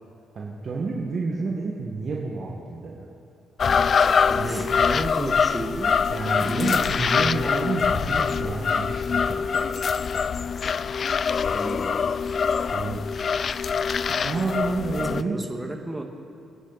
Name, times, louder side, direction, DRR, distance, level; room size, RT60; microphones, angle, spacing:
voice 1, 0.3-3.1 4.3-4.6 6.1-9.7 12.6-13.0 14.1-15.5, right 3 dB, 50° right, -2 dB, 1.7 m, -30 dB
sound 1, 3.6-15.2, left 6 dB, 45° left, 0.3 m, -24 dB
voice 2, 4.3-6.0 6.5-7.0 11.5-12.0 15.0-16.0, right 2 dB, 15° right, 3 dB, 1.7 m, -33 dB
26.0 x 9.8 x 4.1 m, 2.4 s
cardioid pair, 90°, 0 cm